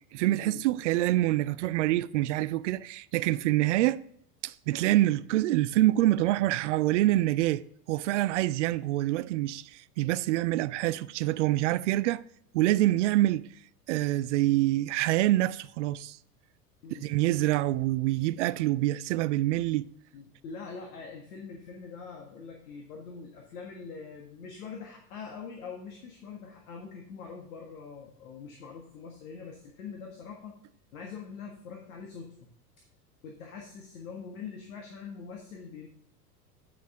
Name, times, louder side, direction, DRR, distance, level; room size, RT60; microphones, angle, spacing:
voice 1, 0.1-4.0 4.4-12.2 12.5-13.4 13.9-16.2 16.9-19.9, right 15 dB, 50° right, 0.5 m, -26 dB
voice 2, 20.1-30.5 30.9-32.5 33.2-35.9, left 5 dB, 65° left, 1.6 m, -43 dB
9.3 x 6.1 x 3.6 m
figure-of-eight pair, 85°, 47 cm